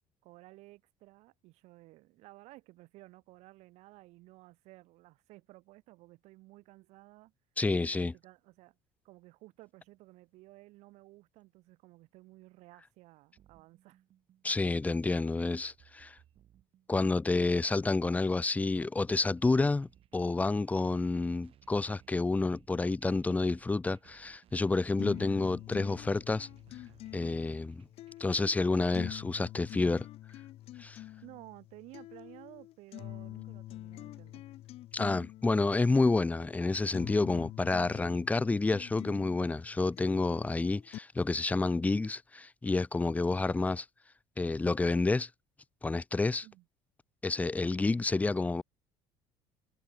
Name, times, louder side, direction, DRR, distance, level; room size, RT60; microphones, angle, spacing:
voice 1, 0.2-7.3 7.8-8.8 9.0-14.0 31.2-34.6 46.4-46.7, right 20 dB, 70° right, 3.4 m, -55 dB
voice 2, 7.6-8.1 14.4-16.2 16.9-26.5 27.1-27.9 28.2-30.1 30.8-31.0 34.9-43.9 44.4-45.3 45.8-46.5 47.2-48.6, left 3 dB, 15° left, 0.6 m, -29 dB
sound 1, 13.4-28.3, right 11 dB, 55° right, 6.9 m, -63 dB
sound 2, 25.0-41.0, left 14 dB, 60° left, 0.9 m, -46 dB
supercardioid pair, 100°, 12 cm